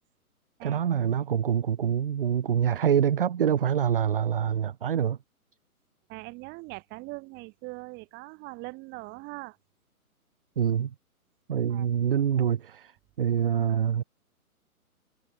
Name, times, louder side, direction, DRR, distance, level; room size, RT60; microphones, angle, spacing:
voice 1, 0.6-5.2 10.6-10.9 11.5-12.9 13.2-14.0, right 8 dB, 40° right, 0.5 m, -25 dB
voice 2, 6.1-9.6 11.7-11.9 12.3-12.4, right 25 dB, 25° right, 6.6 m, -41 dB
figure-of-eight pair, 140°, 45 cm